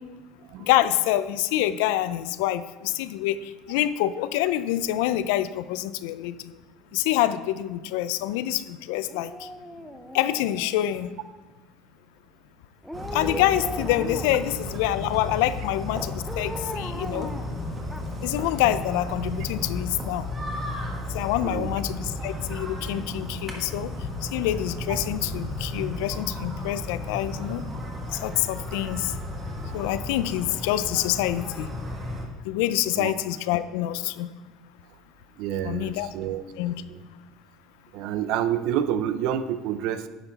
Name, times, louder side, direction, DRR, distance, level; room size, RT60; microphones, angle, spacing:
voice 1, 0.6-6.5 6.9-9.5 10.1-11.1 13.1-17.3 18.2-20.3 21.1-23.9 24.2-27.6 28.1-29.1 29.7-31.7 32.4-34.3 35.6-36.1 36.6-36.7, left 13 dB, 80° left, 14 dB, 0.4 m, -26 dB
Dog, 9.1-11.1 12.8-14.5 16.3-18.4 18.7-18.8, equal, ahead, 0.6 m, -38 dB
sound 1, 12.9-32.3, left 1 dB, 25° right, 1.6 m, -34 dB
voice 2, 21.4-21.7 33.0-33.1 35.4-36.4 36.9-37.0 37.9-40.1, right 10 dB, 70° right, 12 dB, 0.5 m, -28 dB
9.7 x 5.9 x 4.1 m, 1.3 s
supercardioid pair, 110°, 0 cm